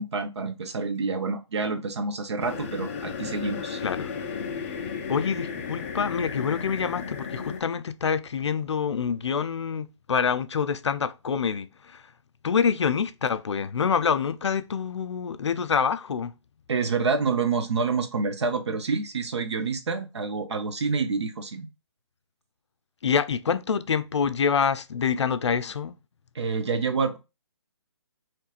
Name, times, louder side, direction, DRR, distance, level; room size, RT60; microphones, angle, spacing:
voice 1, 0.0-3.8 16.7-21.7 26.3-27.2, right 4 dB, 65° right, 1.0 m, -28 dB
sound 1, 2.4-7.6, left 6 dB, 25° left, 0.6 m, -34 dB
voice 2, 5.1-12.0 12.4-16.3 23.0-25.9, left 6 dB, 70° left, 0.5 m, -26 dB
4.5 x 3.1 x 2.5 m
hypercardioid pair, 160°, 15 cm